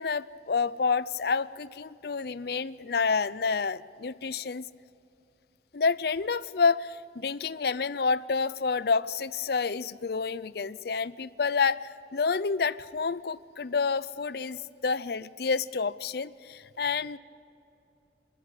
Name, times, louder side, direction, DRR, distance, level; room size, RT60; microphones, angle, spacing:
voice 1, 0.0-4.6 5.7-17.2, left 5 dB, 60° left, 17 dB, 0.5 m, -29 dB
25.0 x 13.5 x 8.4 m, 2.7 s
head